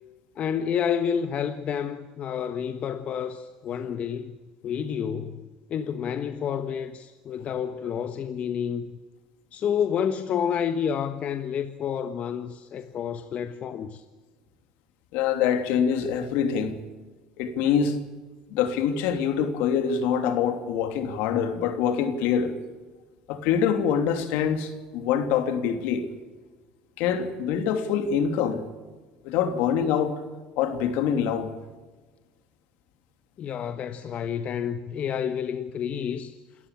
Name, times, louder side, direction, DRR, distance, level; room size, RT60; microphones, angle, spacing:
voice 1, 0.4-4.4 4.6-8.8 9.5-14.0 33.4-36.4, left 8 dB, 50° left, 1.3 m, -29 dB
voice 2, 15.1-16.8 17.4-18.0 18.5-22.5 23.3-26.0 27.0-28.6 29.2-30.2 30.6-31.5, left 7 dB, 75° left, 3.0 m, -25 dB
28.0 x 14.0 x 8.7 m
supercardioid pair, 90°, 3 cm